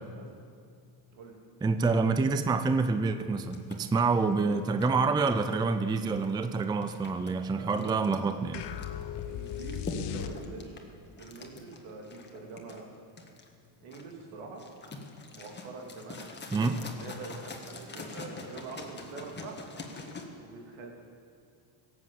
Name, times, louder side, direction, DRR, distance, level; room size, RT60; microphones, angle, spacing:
voice 1, 1.6-8.6 16.5-16.8, right 4 dB, 10° right, 10 dB, 0.4 m, -27 dB
sound 1, 3.5-20.2, left 3 dB, 20° left, 1.6 m, -45 dB
voice 2, 7.5-8.1 9.2-10.8 11.2-12.9 13.8-14.6 15.3-16.2 16.9-19.6 20.4-20.9, right 4 dB, 75° right, 1 dB, 2.9 m, -44 dB
sound 2, 8.5-10.8, left 10 dB, 55° left, 0.9 m, -37 dB
17.0 x 7.9 x 7.6 m, 2.3 s
cardioid pair, 110°, 48 cm